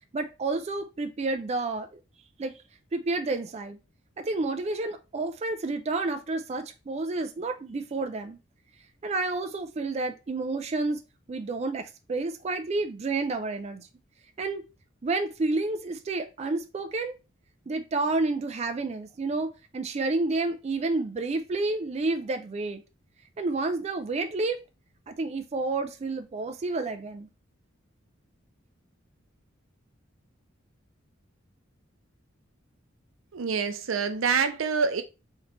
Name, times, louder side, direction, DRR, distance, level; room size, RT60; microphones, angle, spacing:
voice 1, 0.1-2.0 2.4-2.6 2.9-3.8 4.2-8.4 9.0-11.0 11.3-13.9 14.4-14.6 15.0-17.1 17.7-22.8 23.4-24.6 25.1-27.3, right 3 dB, 35° right, 0.4 m, -30 dB
voice 2, 33.3-35.0, right 5 dB, 90° right, 0.6 m, -26 dB
3.8 x 3.2 x 3.2 m
head